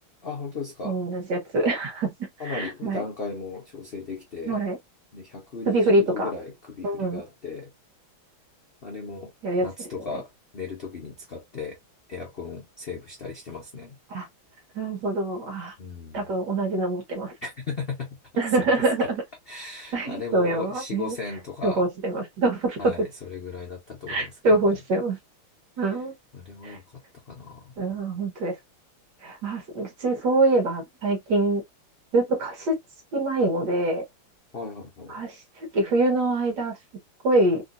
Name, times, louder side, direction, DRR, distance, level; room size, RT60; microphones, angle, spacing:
voice 1, 0.0-1.0 2.4-4.6 5.1-7.7 8.8-9.3 9.6-10.3 10.5-11.8 12.1-13.9 15.8-16.2 17.4-18.1 18.5-18.6 19.5-21.8 22.8-24.8 26.3-26.8 27.3-27.8 34.5-35.2, left 4 dB, 65° left, 0.5 m, -36 dB
voice 2, 0.8-3.0 4.5-4.8 5.7-6.3 6.8-7.2 9.4-9.7 10.1-10.2 14.1-14.3 14.7-15.7 16.1-17.3 18.4-19.2 19.9-21.2 21.6-22.9 24.1-25.2 25.8-26.1 26.6-26.8 27.8-28.6 29.2-31.6 32.1-32.8 33.1-34.0 35.1-36.7 37.2-37.6, right 2 dB, 60° right, 1.6 m, -24 dB
3.7 x 2.6 x 2.4 m
omnidirectional pair, 2.3 m